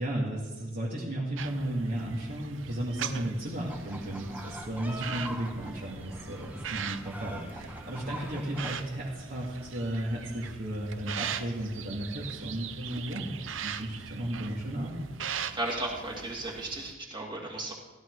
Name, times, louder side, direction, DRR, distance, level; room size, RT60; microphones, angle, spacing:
voice 1, 0.0-13.3 13.6-15.0, right 1 dB, 50° right, -6 dB, 2.4 m, -34 dB
sound 1, 1.4-16.9, right 8 dB, 85° right, 0.7 m, -41 dB
sound 2, 3.7-8.7, right 1 dB, 10° right, 1.2 m, -42 dB
voice 2, 15.5-17.7, right 2 dB, 25° right, -1 dB, 2.5 m, -35 dB
15.5 x 12.5 x 4.8 m, 1.2 s
head